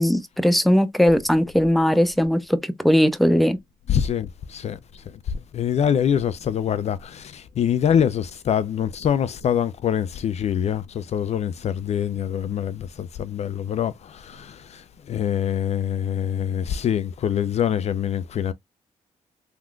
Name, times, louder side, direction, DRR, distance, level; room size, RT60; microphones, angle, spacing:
voice 1, 0.0-3.6, equal, ahead, 0.6 m, -19 dB
voice 2, 3.9-5.0 5.5-18.5, left 9 dB, 55° left, 0.4 m, -25 dB
3.5 x 2.4 x 2.3 m
supercardioid pair, 60°, 14 cm